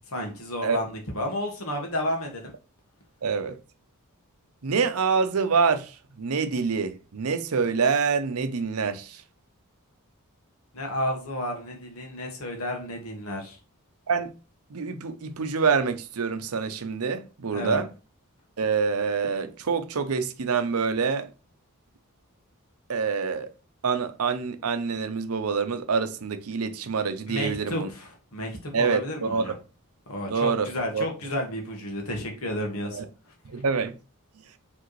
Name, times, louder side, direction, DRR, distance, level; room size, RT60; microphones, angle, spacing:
voice 1, 0.1-2.5 10.7-13.6 17.5-17.8 27.3-29.5 30.1-33.0, left 1 dB, 70° left, 1.5 m, -31 dB
voice 2, 3.2-3.6 4.6-5.9 6.2-9.2 14.1-14.3 14.7-17.9 18.6-21.3 22.9-23.5 23.8-27.9 28.7-29.5 30.3-31.0 32.9-33.0 33.5-33.9, right 5 dB, 75° right, 0.6 m, -26 dB
4.9 x 3.5 x 3.1 m
head